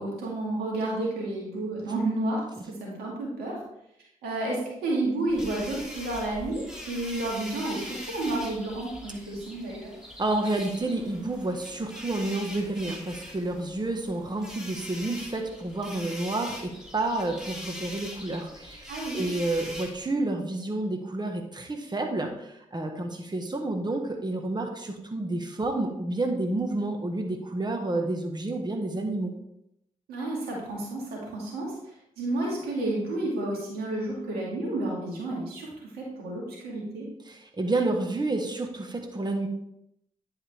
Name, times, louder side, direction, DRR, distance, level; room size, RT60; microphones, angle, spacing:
voice 1, 0.0-3.6 4.2-9.9 18.9-19.2 30.1-37.1, right 2 dB, 90° right, -3 dB, 2.3 m, -31 dB
sound 1, 5.3-20.1, left 1 dB, 5° right, 2.6 m, -42 dB
voice 2, 10.2-18.9 19.1-29.4 37.3-39.5, right 2 dB, 30° right, 3 dB, 1.4 m, -30 dB
10.0 x 4.8 x 3.4 m, 0.80 s
supercardioid pair, 40°, 15 cm